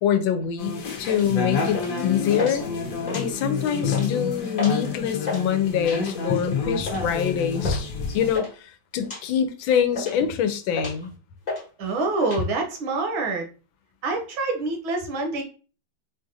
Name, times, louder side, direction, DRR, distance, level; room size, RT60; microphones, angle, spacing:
voice 1, 0.0-2.6 3.1-7.9 8.1-11.1, left 8 dB, 80° left, 1.3 m, -25 dB
sound 1, 0.6-8.4, left 5 dB, 60° left, 1.0 m, -28 dB
sound 2, 1.1-1.3 1.7-2.0 2.3-2.6 3.0-3.5 3.8-4.1 4.6-4.8 5.1-5.4 6.0-6.3 6.9-7.1 7.6-7.8 8.1-8.5 9.0-9.2 9.7-10.3 10.7-11.1 11.5-11.7 11.9-12.4, left 2 dB, 30° left, 0.9 m, -32 dB
voice 2, 11.8-13.4 14.0-15.4, right 3 dB, 80° right, 1.7 m, -26 dB
4.5 x 2.5 x 2.6 m
omnidirectional pair, 2.2 m